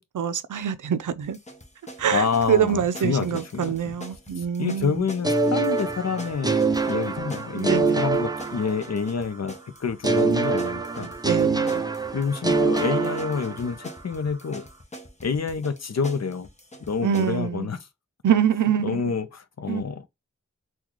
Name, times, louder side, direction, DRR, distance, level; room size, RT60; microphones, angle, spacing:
voice 1, 0.1-1.4 2.0-5.0 7.6-8.0 11.0-11.9 17.0-17.7 18.2-19.1 19.7-19.8, right 8 dB, 80° right, 0.5 m, -25 dB
sound 1, 1.2-17.4, equal, 25° left, 0.8 m, -44 dB
voice 2, 2.1-4.0 4.4-11.1 12.1-14.6 15.2-16.5 16.9-17.9 18.8-20.1, left 5 dB, 60° left, 0.6 m, -28 dB
sound 2, 5.2-9.2 10.0-13.9, right 3 dB, 15° right, 0.4 m, -24 dB
3.8 x 2.3 x 3.0 m
wide cardioid pair, 70°, 30 cm